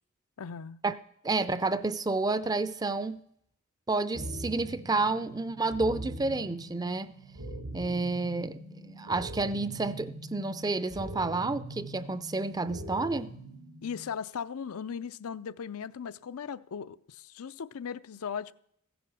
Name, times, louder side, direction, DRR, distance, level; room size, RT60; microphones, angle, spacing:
voice 1, 0.4-0.8 13.8-18.5, left 7 dB, 90° left, 0.5 m, -38 dB
voice 2, 1.2-3.2 3.9-7.1 7.7-8.6 9.0-13.3, right 3 dB, 20° right, 0.4 m, -30 dB
sound 1, 4.1-14.1, right 1 dB, 75° right, 3.2 m, -42 dB
15.0 x 10.0 x 6.2 m
head